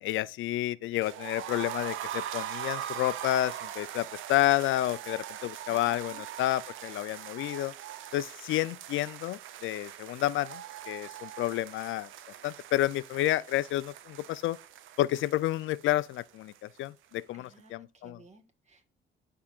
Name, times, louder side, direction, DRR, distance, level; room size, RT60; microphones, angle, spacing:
voice 1, 0.0-7.7 8.1-12.1 12.4-14.6 15.0-18.2, left 15 dB, 80° left, 0.5 m, -30 dB
sound 1, 1.0-16.9 17.1-17.2 17.5-17.6, right 11 dB, 85° right, 0.6 m, -41 dB
voice 2, 5.5-6.2 17.3-18.8, right 3 dB, 35° right, 1.4 m, -57 dB
12.5 x 4.8 x 2.4 m
cardioid pair, 90°, 20 cm